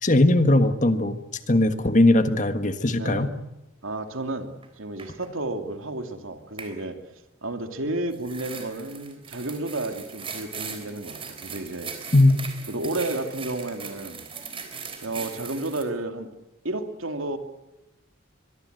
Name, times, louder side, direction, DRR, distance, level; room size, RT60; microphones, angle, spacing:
voice 1, 0.0-1.2 1.5-3.3 12.1-12.4, left 1 dB, 35° left, 9 dB, 1.5 m, -19 dB
voice 2, 3.0-3.3 3.8-7.0 7.4-11.9 12.7-14.3 15.0-16.3 16.6-17.4, right 2 dB, 80° right, 7 dB, 2.6 m, -32 dB
sound 1, 4.6-4.7 5.0-5.3 6.6-6.8 8.1-15.8, right 6 dB, 25° right, 3.6 m, -39 dB
23.5 x 22.5 x 8.0 m, 0.95 s
head